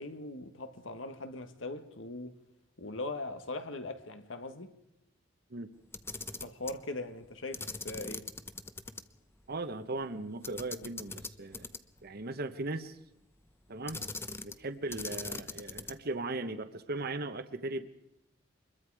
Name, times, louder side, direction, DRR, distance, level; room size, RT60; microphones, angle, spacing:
voice 1, 0.0-2.4 2.8-4.8 6.4-8.3, left 2 dB, 80° left, 1.6 m, -40 dB
Camera, 5.8-6.8 7.5-9.0 9.4-9.5 10.4-12.0 13.9-14.6 14.9-16.1, left 3 dB, 15° left, 0.8 m, -41 dB
voice 2, 9.5-11.7 12.0-13.0 13.7-14.0 14.4-17.9, right 2 dB, 55° right, 1.1 m, -38 dB
25.0 x 22.0 x 4.9 m
head